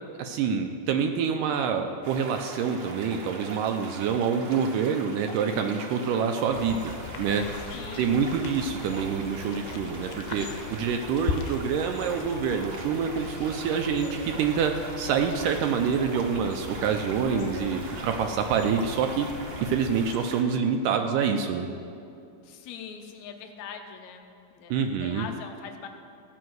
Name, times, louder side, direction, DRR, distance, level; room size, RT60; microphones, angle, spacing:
voice 1, 0.2-6.9 7.2-7.4 8.0-19.3 19.6-21.7 24.7-25.3, right 6 dB, 80° right, 5 dB, 2.1 m, -26 dB
sound 1, 2.0-20.4, right 3 dB, 60° right, 1.4 m, -41 dB
sound 2, 6.5-20.2, left 6 dB, 90° left, 2.5 m, -40 dB
voice 2, 7.7-8.1 17.3-17.8 22.4-24.2 24.5-24.7 25.0-25.9, left 7 dB, 75° left, 5 dB, 1.8 m, -41 dB
15.5 x 6.1 x 7.8 m, 2.5 s
omnidirectional pair, 4.1 m